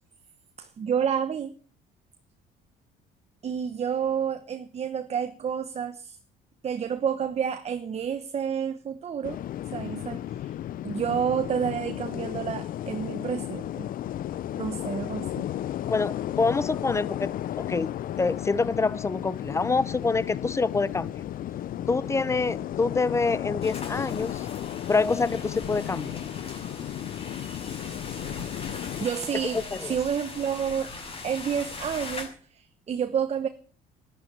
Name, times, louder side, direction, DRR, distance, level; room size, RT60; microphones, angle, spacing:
voice 1, 0.6-1.5 3.4-6.2 6.6-9.4 9.7-10.5 10.8-13.9 14.5-15.5 29.0-30.9 31.2-33.5, right 8 dB, 40° right, 1.1 m, -29 dB
sound 1, 9.2-29.1, left 12 dB, 55° left, 0.6 m, -34 dB
voice 2, 15.9-17.9 18.2-21.2 21.9-24.5 24.9-26.2 29.7-29.9, left 4 dB, 15° left, 0.7 m, -26 dB
sound 2, 23.6-32.3, left 3 dB, 35° left, 5.7 m, -40 dB
11.5 x 11.5 x 8.6 m
cardioid pair, 110°, 17 cm